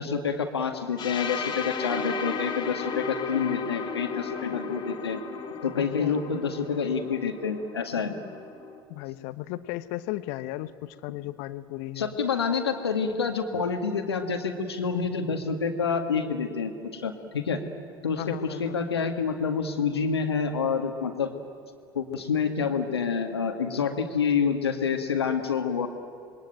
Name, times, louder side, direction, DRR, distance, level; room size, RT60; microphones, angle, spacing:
voice 1, 0.0-5.2 5.6-8.1 12.0-17.6 18.0-21.3 21.9-25.9, left 6 dB, 85° left, 6 dB, 2.0 m, -28 dB
sound 1, 1.0-8.8, left 5 dB, 35° left, 2.6 m, -35 dB
voice 2, 5.7-6.3 8.9-12.1 18.2-18.8, left 16 dB, 60° left, 14 dB, 1.1 m, -36 dB
27.0 x 21.5 x 9.1 m, 2.3 s
hypercardioid pair, 75°, 13 cm